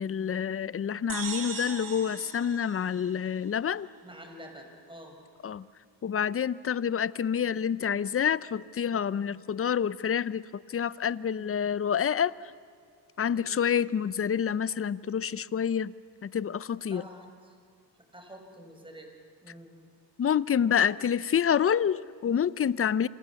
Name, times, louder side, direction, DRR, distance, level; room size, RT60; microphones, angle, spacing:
voice 1, 0.0-3.9 5.4-5.6 6.0-12.5 13.2-15.9 16.2-17.0 20.2-23.1, left 8 dB, 35° left, 18 dB, 0.7 m, -28 dB
sound 1, 1.1-3.7, right 6 dB, 50° right, 3.4 m, -39 dB
voice 2, 4.0-5.2 13.3-13.6 16.9-17.6 18.1-19.1 19.4-19.7, equal, 10° right, 4 dB, 5.3 m, -47 dB
27.5 x 27.0 x 7.1 m, 2.1 s
cardioid pair, 80°, 40 cm